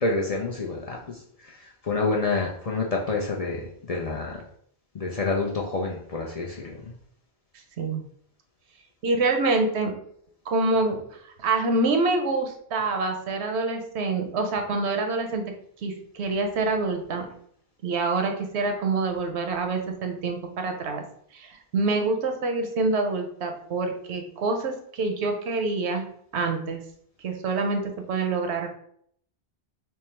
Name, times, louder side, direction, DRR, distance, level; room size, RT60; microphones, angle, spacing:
voice 1, 0.0-4.4 4.9-6.8, left 3 dB, 50° left, -2 dB, 0.5 m, -28 dB
voice 2, 9.0-9.9 10.5-15.4 15.8-17.3 17.8-21.0 21.3-26.1 26.3-26.8 27.2-28.7, right 3 dB, 85° right, 4 dB, 0.9 m, -26 dB
3.4 x 2.0 x 4.2 m, 0.66 s
omnidirectional pair, 1.1 m